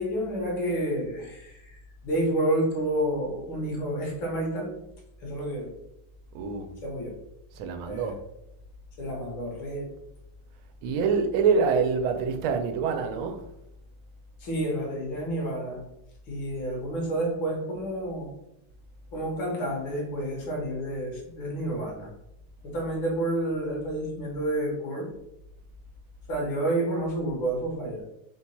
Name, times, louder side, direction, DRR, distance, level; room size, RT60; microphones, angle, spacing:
voice 1, 0.0-4.7 5.2-5.8 6.8-7.1 7.9-8.1 9.0-9.9 14.4-15.9 16.3-18.3 19.1-22.1 22.6-25.1 26.3-28.0, right 1 dB, 70° left, 2.0 m, -30 dB
voice 2, 6.3-6.7 7.5-8.2 10.8-13.6, right 5 dB, 85° right, 1.4 m, -26 dB
4.4 x 2.3 x 4.1 m
omnidirectional pair, 2.2 m